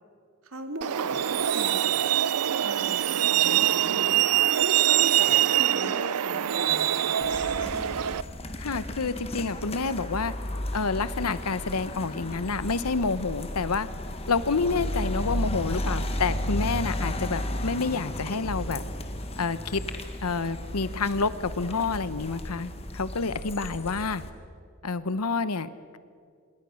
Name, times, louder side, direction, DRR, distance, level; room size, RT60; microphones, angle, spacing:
voice 1, 0.4-2.0 2.6-4.2 4.6-7.7, right 1 dB, 70° right, 6 dB, 2.5 m, -38 dB
Truck, 0.8-8.2, right 11 dB, 90° right, 0.5 m, -24 dB
sound 1, 7.2-24.3, left 1 dB, 25° left, 1.6 m, -34 dB
voice 2, 8.6-10.3 10.7-13.9 14.3-18.8 19.4-19.8 20.2-24.2 24.8-26.0, left 4 dB, 90° left, 14 dB, 1.0 m, -28 dB
27.0 x 22.0 x 6.5 m, 2.3 s
head